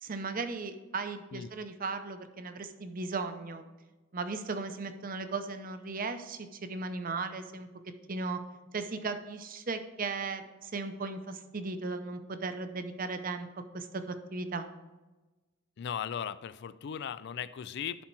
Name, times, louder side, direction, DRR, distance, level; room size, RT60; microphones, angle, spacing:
voice 1, 0.0-3.6 4.1-7.7 8.1-8.4 8.7-14.7, right 3 dB, 45° right, 9 dB, 0.7 m, -36 dB
voice 2, 15.8-18.0, left 8 dB, 55° left, 16 dB, 0.3 m, -37 dB
11.0 x 4.3 x 4.5 m, 1.1 s
head